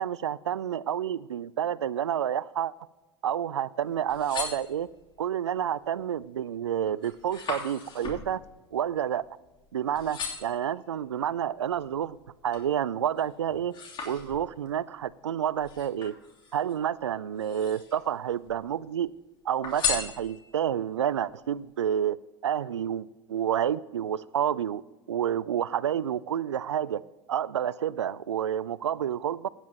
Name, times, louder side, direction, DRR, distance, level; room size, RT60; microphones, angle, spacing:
voice 1, 0.0-2.7 3.2-4.9 5.2-8.4 8.7-9.2 9.7-12.2 12.4-13.7 14.0-16.1 16.5-19.1 19.4-22.2 22.4-24.8 25.1-27.0 27.3-29.5, right 9 dB, 85° right, 0.4 m, -29 dB
sound 1, 3.9-5.2 5.8-6.2 6.5-9.7 9.9-10.7 11.3-12.8 13.2-14.7 15.6-16.7 17.3-18.1 18.4-19.1 19.6-20.7 21.2-21.3, left 5 dB, 35° left, 3.1 m, -37 dB
16.5 x 9.7 x 2.9 m
hypercardioid pair, 85°, 14 cm